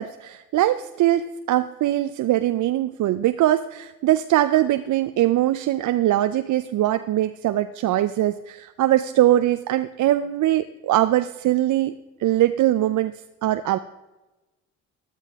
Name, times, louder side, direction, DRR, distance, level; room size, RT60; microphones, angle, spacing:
voice 1, 0.0-13.1 13.4-13.8, right 13 dB, 60° right, 11 dB, 0.6 m, -21 dB
13.0 x 13.0 x 3.6 m, 1.1 s
supercardioid pair, 60°, 34 cm